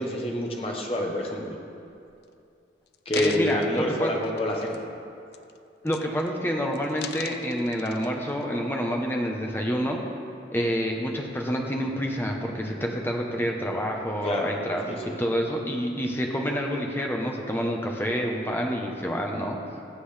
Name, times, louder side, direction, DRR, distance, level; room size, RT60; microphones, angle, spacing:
voice 1, 0.0-1.6 3.0-4.8 14.2-14.5 14.9-15.2, left 1 dB, 30° left, 0 dB, 1.4 m, -28 dB
sound 1, 1.9-2.2 2.9-5.0 5.3-5.6 5.9-6.4 6.7-8.5 9.0-9.1, left 8 dB, 60° left, 0.4 m, -40 dB
voice 2, 3.1-4.1 5.8-10.0 10.5-19.6, equal, 10° left, 0 dB, 1.0 m, -28 dB
19.0 x 7.8 x 3.4 m, 2.6 s
head